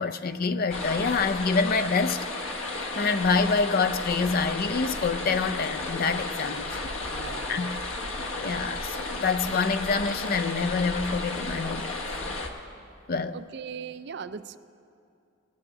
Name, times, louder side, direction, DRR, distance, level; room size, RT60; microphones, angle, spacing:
voice 1, 0.0-2.2 3.0-6.9 7.5-7.7 8.3-12.0 13.1-13.4, left 4 dB, 45° left, 0.4 m, -26 dB
sound 1, 0.7-12.5, left 2 dB, 85° left, 1.2 m, -33 dB
voice 2, 7.1-7.7 13.3-14.6, right 6 dB, 55° right, 0.4 m, -39 dB
18.5 x 6.3 x 9.1 m
head